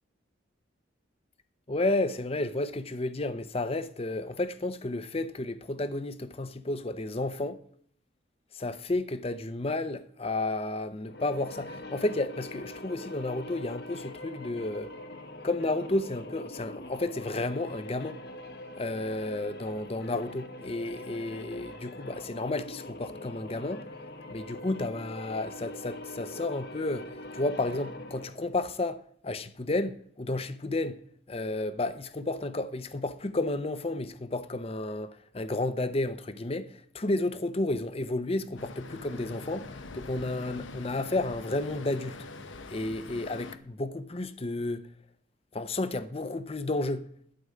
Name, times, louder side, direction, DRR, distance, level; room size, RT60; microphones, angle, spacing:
voice 1, 1.7-7.6 8.5-14.9 15.4-18.2 18.7-23.9 24.3-31.0 31.3-42.2 42.7-44.8 45.5-47.1, left 2 dB, 30° left, 0.7 m, -32 dB
sound 1, 11.0-28.5, left 1 dB, 55° left, 1.2 m, -43 dB
Traffic noise roadway noise, 38.6-43.6, left 3 dB, 80° left, 1.0 m, -44 dB
11.5 x 5.3 x 8.4 m
head